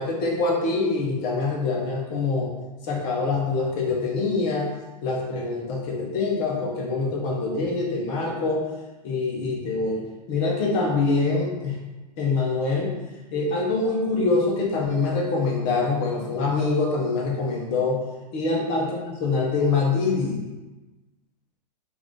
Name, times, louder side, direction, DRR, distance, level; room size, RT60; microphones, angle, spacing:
voice 1, 0.0-2.5 2.8-4.7 5.0-8.6 9.0-11.8 12.2-12.9 13.3-18.0 18.3-20.4, left 3 dB, 45° left, -1 dB, 0.9 m, -25 dB
3.5 x 2.6 x 3.5 m, 1.1 s
hypercardioid pair, 110°, 21 cm